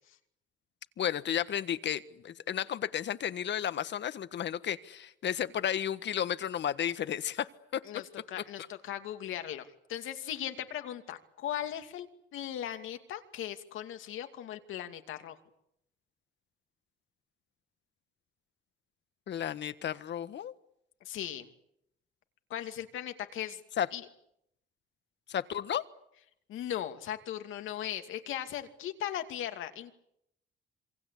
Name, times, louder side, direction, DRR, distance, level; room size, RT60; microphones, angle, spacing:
voice 1, 1.0-7.8 19.3-20.5 23.8-23.9 25.3-25.8, left 9 dB, 65° left, 13 dB, 1.5 m, -33 dB
voice 2, 7.8-12.1 12.3-15.4 21.0-21.5 22.5-23.6 23.9-24.1 26.5-29.9, left 11 dB, 85° left, 7 dB, 2.5 m, -38 dB
27.0 x 23.5 x 8.4 m, 0.78 s
cardioid pair, 90°, 20 cm